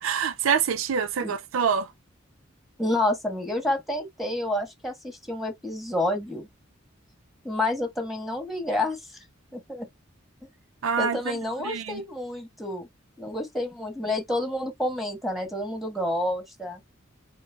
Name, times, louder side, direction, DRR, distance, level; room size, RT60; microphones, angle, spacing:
voice 1, 0.0-1.9 10.8-11.4 11.6-12.0, right 6 dB, 85° right, 0.5 m, -26 dB
voice 2, 2.8-6.5 7.4-9.0 9.5-9.9 11.0-12.9 13.2-16.8, left 1 dB, ahead, 1.4 m, -29 dB
4.4 x 2.5 x 3.3 m
head